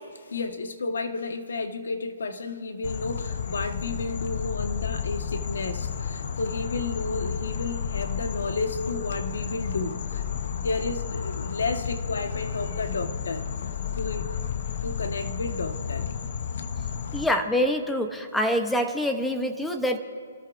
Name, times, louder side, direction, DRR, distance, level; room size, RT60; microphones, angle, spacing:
voice 1, 0.3-10.2 10.6-13.6 14.0-14.4 14.8-16.1, left 3 dB, 80° left, 6 dB, 1.5 m, -32 dB
sound 1, 2.8-17.3, left 7 dB, 55° left, 0.9 m, -32 dB
voice 2, 17.1-20.0, equal, 5° left, 6 dB, 0.9 m, -25 dB
27.5 x 13.5 x 2.6 m, 2.3 s
hypercardioid pair, 160°, 0 cm